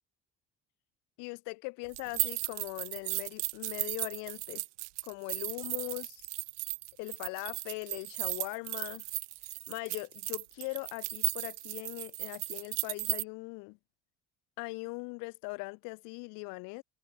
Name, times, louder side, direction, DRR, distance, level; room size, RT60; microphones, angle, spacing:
voice 1, 1.2-4.6 5.0-6.2 7.0-9.0 9.7-13.8 14.6-16.8, left 30 dB, 60° left, 0.7 m, -40 dB
sound 1, 1.9-13.2, right 23 dB, 70° right, 0.5 m, -36 dB
figure-of-eight pair, 60°, 37 cm